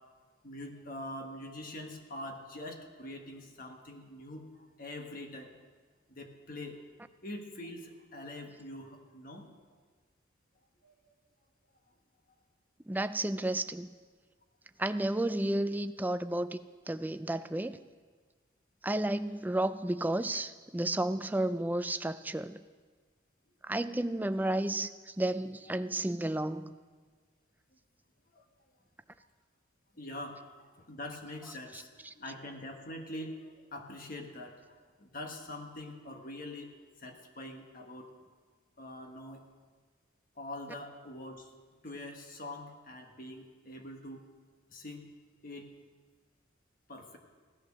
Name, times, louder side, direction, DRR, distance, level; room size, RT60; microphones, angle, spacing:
voice 1, 0.4-4.5 4.8-5.5 6.1-6.8 7.2-9.5 10.8-10.9 25.7-25.8 28.3-28.4 29.9-36.7 37.0-38.1 38.8-39.4 40.4-41.5 41.8-44.3 44.7-45.1 45.4-45.8 46.9-47.2, left 1 dB, 45° left, 3 dB, 1.5 m, -44 dB
voice 2, 12.9-13.9 14.8-16.6 16.9-17.8 18.8-22.6 23.6-24.9 25.2-26.8, right 1 dB, 10° right, 11 dB, 0.4 m, -32 dB
16.5 x 10.5 x 6.3 m, 1.5 s
head